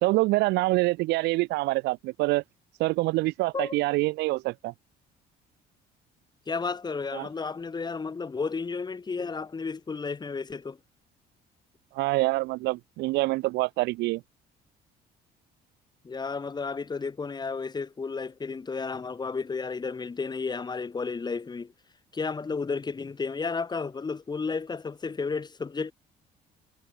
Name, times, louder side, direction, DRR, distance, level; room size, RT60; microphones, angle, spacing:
voice 1, 0.0-2.4 2.8-4.7 7.1-7.3 11.9-14.2, right 20 dB, 90° right, 2.6 m, -26 dB
voice 2, 6.5-10.8 16.0-21.7 22.1-25.9, left 4 dB, 25° left, 3.0 m, -32 dB
cardioid pair, 110°, 17 cm